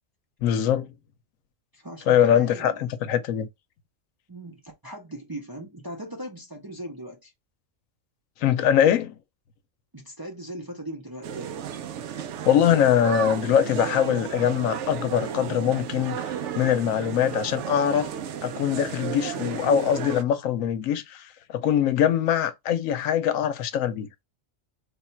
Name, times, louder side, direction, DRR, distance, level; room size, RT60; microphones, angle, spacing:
voice 1, 0.4-0.9 2.1-3.5 8.4-9.2 12.5-16.3 16.6-18.1 18.4-24.1, left 9 dB, 90° left, 1.0 m, -22 dB
voice 2, 1.7-2.8 4.3-7.3 9.9-11.7, right 1 dB, 25° right, 0.5 m, -39 dB
sound 1, 11.2-20.2, right 8 dB, 70° right, 0.9 m, -33 dB
3.5 x 2.3 x 4.3 m
omnidirectional pair, 1.3 m